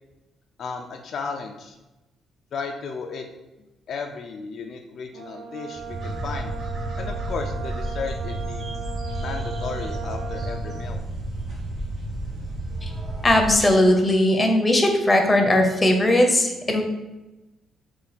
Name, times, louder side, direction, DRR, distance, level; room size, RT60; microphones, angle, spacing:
voice 1, 0.6-1.8 2.5-3.3 3.9-6.5 7.0-8.6 9.2-11.0, left 5 dB, 60° left, 3 dB, 0.4 m, -34 dB
Brass instrument, 5.1-11.0, right 6 dB, 85° right, 0.5 m, -37 dB
sound 1, 5.7-13.6, right 1 dB, 55° right, 1.0 m, -31 dB
voice 2, 13.2-16.8, left 1 dB, 20° left, 3 dB, 0.7 m, -18 dB
3.9 x 2.3 x 4.1 m, 1.0 s
cardioid pair, 90°, 0 cm